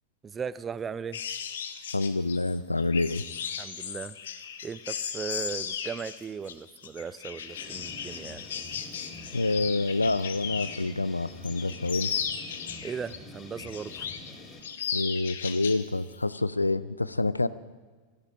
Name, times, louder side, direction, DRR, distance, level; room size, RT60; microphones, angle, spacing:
voice 1, 0.2-1.2 3.6-4.2 4.6-8.5 12.8-14.1, right 6 dB, 20° right, 18 dB, 0.5 m, -37 dB
sound 1, 1.1-10.9 11.3-13.2 13.6-14.3 14.6-15.8 16.1-16.4, left 7 dB, 60° left, 1.0 m, -36 dB
voice 2, 1.9-3.2 9.3-12.1 14.9-17.5, left 2 dB, 80° left, 17 dB, 0.4 m, -27 dB
sound 2, 7.5-14.6, left 2 dB, 20° left, 4.3 m, -46 dB
14.5 x 11.5 x 6.3 m, 1.4 s
figure-of-eight pair, 90°, 0 cm